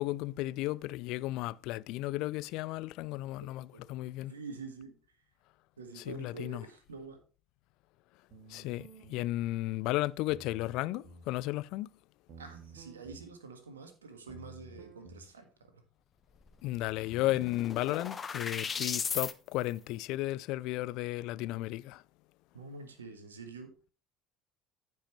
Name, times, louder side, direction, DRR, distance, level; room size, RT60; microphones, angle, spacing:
voice 1, 0.0-4.3 6.0-6.6 8.5-11.9 16.6-22.0, left 17 dB, 60° left, 0.4 m, -34 dB
voice 2, 3.7-4.9 5.8-7.2 12.4-15.8 18.6-18.9 22.5-23.7, right 4 dB, 85° right, 1.6 m, -47 dB
sound 1, 8.3-9.3 10.3-11.3 12.3-13.3 14.3-15.3, right 3 dB, 55° right, 2.1 m, -52 dB
sound 2, 16.5-16.6 16.8-19.3, left 6 dB, 30° left, 1.0 m, -36 dB
15.0 x 5.6 x 3.2 m
figure-of-eight pair, 60°, 0 cm